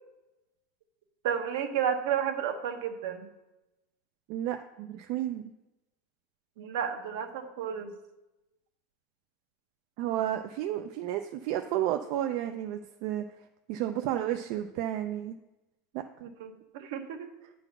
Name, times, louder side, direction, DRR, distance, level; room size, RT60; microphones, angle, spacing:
voice 1, 1.2-3.3 6.6-7.9 16.2-17.3, right 8 dB, 70° right, 6 dB, 1.0 m, -32 dB
voice 2, 4.3-5.4 10.0-13.2 13.7-15.4 15.9-16.0, right 12 dB, 50° right, 6 dB, 0.4 m, -32 dB
8.9 x 3.9 x 6.0 m, 0.99 s
supercardioid pair, 160°, 0 cm